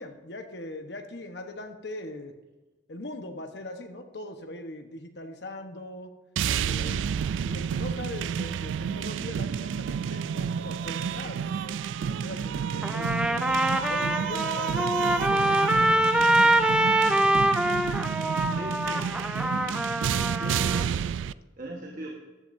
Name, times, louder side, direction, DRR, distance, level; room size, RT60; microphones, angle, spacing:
voice 1, 0.0-2.3 2.9-6.2 6.6-7.1 7.4-11.8 12.1-13.4 13.9-17.4, left 1 dB, 60° left, 5 dB, 1.1 m, -41 dB
sound 1, 6.4-21.3, right 7 dB, 80° right, 0.3 m, -30 dB
Trumpet, 12.8-20.9, right 1 dB, 5° right, 0.4 m, -24 dB
voice 2, 18.1-19.9 20.3-22.1, equal, 45° right, 0 dB, 1.4 m, -42 dB
14.0 x 11.0 x 2.7 m, 1.2 s
head